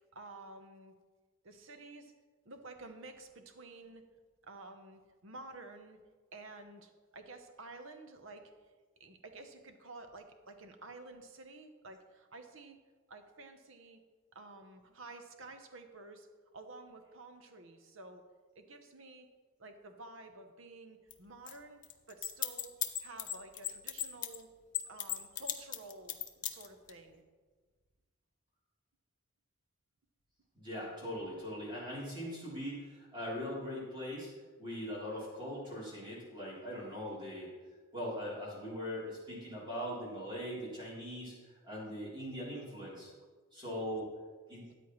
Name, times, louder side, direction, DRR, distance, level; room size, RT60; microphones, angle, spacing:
voice 1, 0.1-0.9 1.4-2.1 2.4-4.1 4.4-6.0 6.3-8.5 9.0-12.8 13.1-14.0 14.3-16.3 16.5-18.3 18.5-19.3 19.6-21.8 22.1-22.7 23.0-24.5 24.9-27.2 43.7-43.9, right 2 dB, 60° right, 6 dB, 0.9 m, -51 dB
sound 1, 21.1-21.2 21.5-21.6 21.8-24.4 24.7-26.9, left 12 dB, 35° left, 0.6 m, -35 dB
voice 2, 30.5-34.3 34.6-37.5 37.9-43.1 43.5-44.1 44.5-44.6, equal, 20° right, -7 dB, 3.5 m, -41 dB
13.5 x 8.9 x 3.1 m, 1.4 s
head